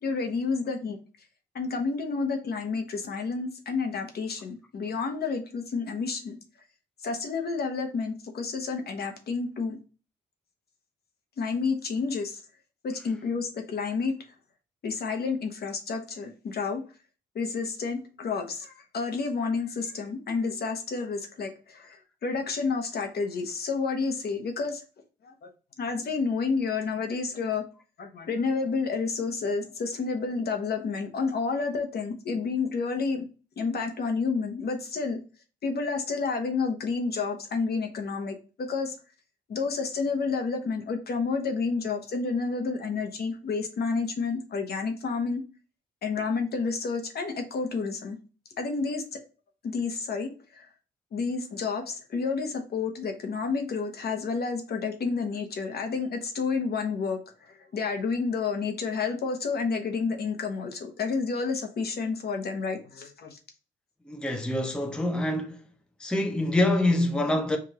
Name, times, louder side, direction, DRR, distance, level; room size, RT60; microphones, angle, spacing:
voice 1, 0.0-1.0 1.5-6.4 7.0-9.8 11.4-12.4 12.8-14.1 14.8-16.8 17.3-24.8 25.2-25.5 25.8-27.6 28.0-33.3 33.6-35.2 35.6-38.9 39.5-45.4 46.0-48.2 48.6-49.2 49.6-50.7 51.1-57.2 57.5-63.4, left 4 dB, 55° left, 0.9 m, -30 dB
voice 2, 64.1-65.6 66.0-67.6, left 1 dB, 5° left, 0.6 m, -25 dB
4.8 x 2.5 x 2.9 m
cardioid pair, 90°, 20 cm